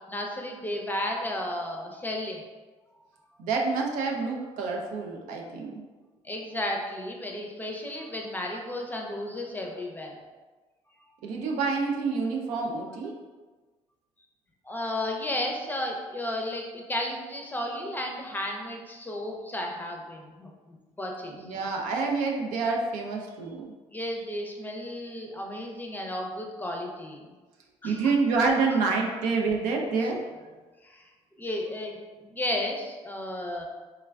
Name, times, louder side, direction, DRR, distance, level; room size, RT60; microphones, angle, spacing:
voice 1, 0.1-2.4 6.2-10.2 14.6-21.5 23.9-27.3 27.8-28.1 30.8-31.0 31.4-33.6, left 1 dB, 15° left, 1 dB, 0.5 m, -33 dB
voice 2, 3.4-5.8 11.2-13.2 21.4-23.7 27.8-30.2, right 4 dB, 80° right, 1 dB, 0.4 m, -27 dB
3.2 x 2.3 x 2.2 m, 1.3 s
supercardioid pair, 70°, 13 cm